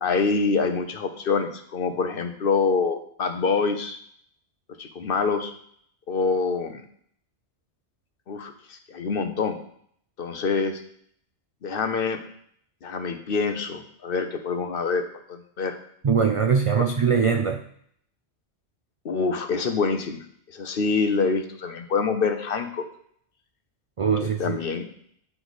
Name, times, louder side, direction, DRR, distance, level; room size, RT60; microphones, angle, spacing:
voice 1, 0.0-4.0 4.8-5.5 6.1-6.8 8.3-9.6 10.2-10.8 11.6-12.2 12.8-15.0 15.3-15.8 16.8-16.9 19.0-22.8 24.2-24.9, left 4 dB, 55° left, 7 dB, 0.9 m, -26 dB
voice 2, 16.0-17.6 24.0-24.6, right 6 dB, 55° right, 5 dB, 0.3 m, -22 dB
8.7 x 4.8 x 4.0 m, 0.65 s
omnidirectional pair, 1.2 m